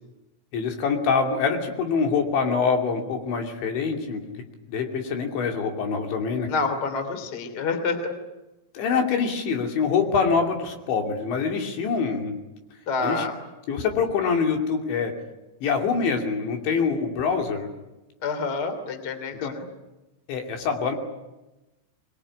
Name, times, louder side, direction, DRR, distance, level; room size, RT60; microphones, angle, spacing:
voice 1, 0.5-4.2 4.7-6.5 8.7-12.3 13.0-13.3 13.7-15.1 15.6-17.7 19.4-19.5 20.3-21.0, left 5 dB, 65° left, 3 dB, 4.9 m, -25 dB
voice 2, 6.5-8.1 12.9-13.4 18.2-19.7, left 4 dB, 30° left, 9 dB, 2.3 m, -28 dB
24.0 x 22.5 x 9.9 m, 1.0 s
omnidirectional pair, 5.8 m